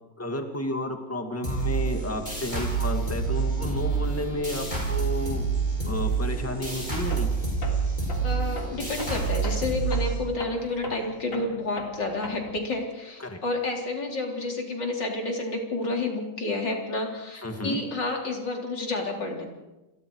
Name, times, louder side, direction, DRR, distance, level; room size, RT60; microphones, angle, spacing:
voice 1, 0.2-5.4 5.8-7.3 13.2-13.4 17.4-17.8, left 1 dB, 10° left, 4 dB, 2.1 m, -32 dB
sound 1, 1.4-10.7, right 4 dB, 25° left, 7.4 m, -28 dB
Tools, 7.1-7.3 7.6-12.7, left 2 dB, 45° left, 3.4 m, -39 dB
voice 2, 8.2-19.4, left 2 dB, 75° left, 1 dB, 4.4 m, -30 dB
30.0 x 22.0 x 4.9 m, 1.0 s
omnidirectional pair, 1.9 m